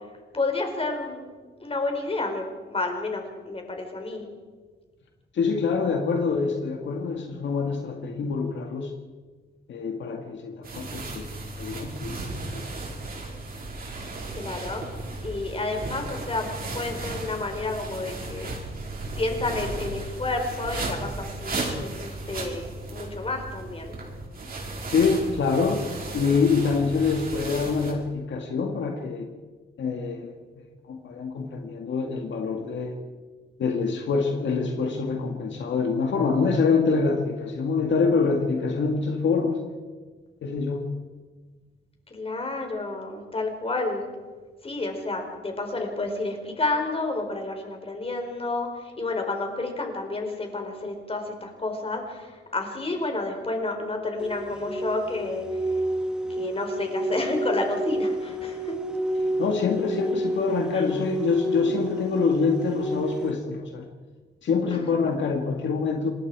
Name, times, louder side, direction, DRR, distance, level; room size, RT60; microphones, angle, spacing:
voice 1, 0.3-1.3 1.6-4.3 8.4-8.5 14.3-14.8 15.2-16.5 16.7-18.5 19.1-23.9 42.1-44.0 44.6-55.4 56.3-58.7 60.7-60.9, left 2 dB, 30° left, 3 dB, 4.7 m, -30 dB
voice 2, 5.3-8.9 9.7-11.2 11.6-12.8 24.9-25.8 26.1-29.3 29.8-33.0 33.6-39.6 40.4-40.9 59.2-63.9 64.4-66.1, left 5 dB, 75° left, 3 dB, 2.1 m, -25 dB
sound 1, 10.6-27.9, right 2 dB, 50° right, 5.0 m, -35 dB
sound 2, 54.2-63.3, right 1 dB, 5° right, 1.6 m, -30 dB
26.5 x 20.5 x 4.9 m, 1.4 s
cardioid pair, 95°, 19 cm